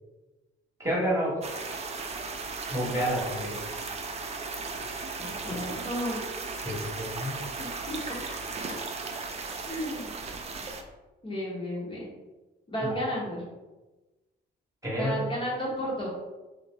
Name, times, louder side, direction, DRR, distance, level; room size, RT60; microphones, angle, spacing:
voice 1, 0.8-1.4 2.7-3.6 6.6-7.3 14.8-15.2, equal, 15° right, -5 dB, 1.3 m, -29 dB
sound 1, 1.4-10.8, right 4 dB, 35° right, 0.5 m, -36 dB
voice 2, 5.2-6.3 7.6-8.0 8.3-8.4 9.6-10.1 11.2-12.1 12.7-13.4 14.9-16.1, equal, 25° left, -6 dB, 1.1 m, -33 dB
3.1 x 2.8 x 3.6 m, 1.1 s
cardioid pair, 100°, 20 cm